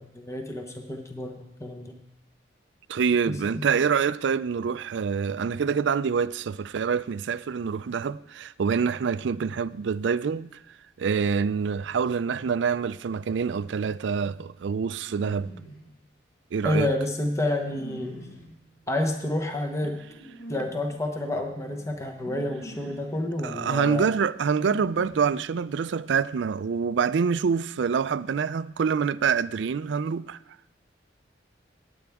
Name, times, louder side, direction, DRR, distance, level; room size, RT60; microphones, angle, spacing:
voice 1, 0.0-2.0 3.3-3.7 16.6-18.3 18.9-20.0 20.5-24.1, left 1 dB, 15° left, 1.0 m, -29 dB
voice 2, 2.9-10.5 11.0-15.5 16.5-16.9 23.4-30.4, right 6 dB, 75° right, 0.4 m, -26 dB
sound 1, 15.0-15.9 16.7-25.8, right 1 dB, 80° left, 5.1 m, -45 dB
18.5 x 8.8 x 3.5 m
head